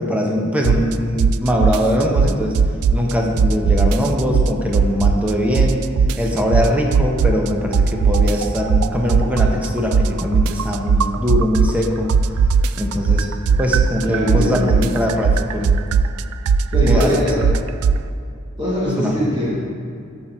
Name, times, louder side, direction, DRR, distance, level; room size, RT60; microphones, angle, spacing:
voice 1, 0.0-2.5 2.9-5.8 6.2-12.1 12.8-13.3 13.6-15.8 16.9-17.5 19.0-19.1, left 1 dB, 5° right, 0 dB, 0.9 m, -21 dB
sound 1, 0.6-0.9 1.2-3.1 3.4-5.3 5.5-7.5 7.7-11.8 12.1-18.0, right 5 dB, 80° right, 0.3 m, -17 dB
voice 2, 14.0-15.0 16.7-17.5 18.6-19.6, equal, 20° right, -8 dB, 1.7 m, -21 dB
8.7 x 7.5 x 4.4 m, 2.4 s
head